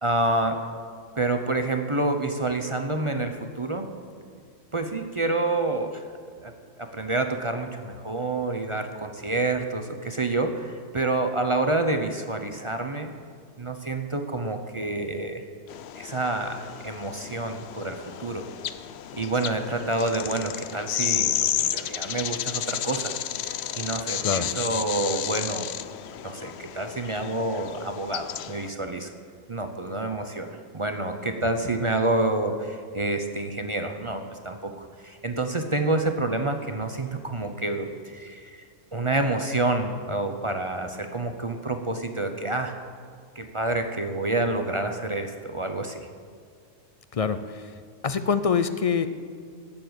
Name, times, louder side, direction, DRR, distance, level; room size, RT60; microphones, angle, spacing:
voice 1, 0.0-0.6 1.2-3.9 4.7-6.0 6.4-13.1 13.6-15.4 15.9-18.5 19.1-23.1 23.7-25.7 26.2-29.1 29.5-38.6 38.9-42.7 43.4-46.1, right 2 dB, 30° right, 6 dB, 0.7 m, -28 dB
sound 1, 15.7-28.7, left 10 dB, 65° left, 0.8 m, -32 dB
voice 2, 47.1-47.7 48.0-49.1, left 6 dB, 45° left, 11 dB, 0.4 m, -25 dB
18.0 x 7.1 x 7.9 m, 2.1 s
omnidirectional pair, 1.3 m